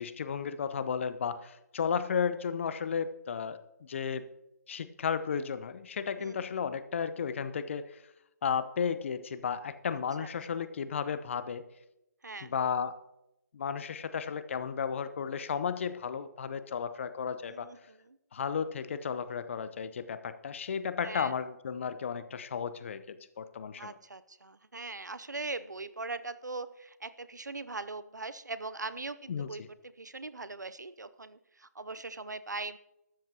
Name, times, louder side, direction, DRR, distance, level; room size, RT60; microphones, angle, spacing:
voice 1, 0.0-4.3 4.7-8.0 8.4-11.6 12.4-13.0 13.5-17.7 18.3-24.0 29.3-29.7, left 6 dB, 45° left, 13 dB, 0.8 m, -34 dB
voice 2, 17.5-18.2 21.0-21.3 23.8-29.6 30.0-32.8, right 3 dB, 80° right, 15 dB, 0.7 m, -40 dB
14.5 x 12.5 x 2.9 m, 0.88 s
figure-of-eight pair, 145°, 9 cm